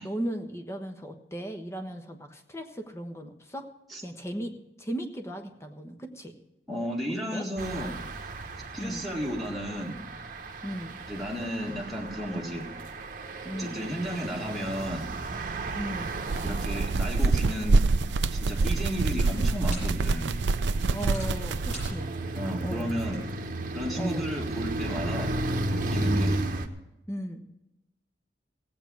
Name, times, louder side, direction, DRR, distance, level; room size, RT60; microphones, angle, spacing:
voice 1, 0.0-3.7 4.0-6.3 7.3-7.5 8.8-9.0 10.6-10.9 13.4-13.8 15.7-16.1 20.9-22.1 22.6-22.9 24.0-24.3 26.0-26.4 27.1-27.4, equal, 15° left, 5 dB, 1.1 m, -36 dB
voice 2, 6.7-8.0 8.7-10.0 11.1-12.7 13.5-15.1 16.4-17.8 18.3-20.3 22.3-23.2 23.7-25.3 25.6-26.3, equal, ahead, -4 dB, 2.0 m, -33 dB
sound 1, 7.6-26.7, right 2 dB, 50° right, 1.0 m, -34 dB
sound 2, 14.7-21.9, right 3 dB, 90° right, 0.5 m, -27 dB
sound 3, 17.9-24.0, equal, 45° left, 6.7 m, -49 dB
16.0 x 8.4 x 6.3 m, 0.96 s
head